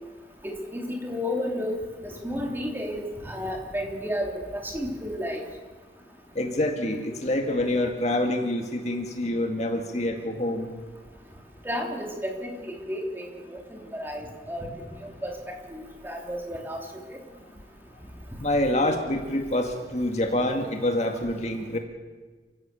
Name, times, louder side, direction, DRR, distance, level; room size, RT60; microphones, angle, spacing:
voice 1, 0.4-1.8 2.0-5.4 11.6-14.7 15.0-15.3 15.7-16.8 17.1-17.2, equal, 10° right, 1 dB, 3.4 m, -32 dB
voice 2, 6.4-10.7 18.4-21.8, left 1 dB, 40° left, 4 dB, 2.0 m, -26 dB
29.0 x 16.5 x 7.0 m, 1.4 s
head